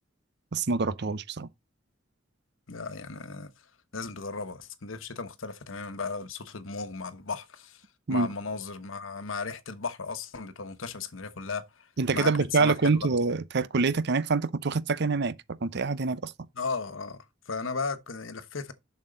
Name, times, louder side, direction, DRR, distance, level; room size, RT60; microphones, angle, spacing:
voice 1, 0.5-1.5 8.1-8.3 12.0-15.4 15.6-16.3, right 4 dB, 60° right, 0.7 m, -26 dB
voice 2, 2.7-3.5 3.9-11.9 12.1-12.3 12.6-12.7 16.6-17.2 17.5-18.7, left 4 dB, 85° left, 1.2 m, -35 dB
7.3 x 6.3 x 3.9 m
head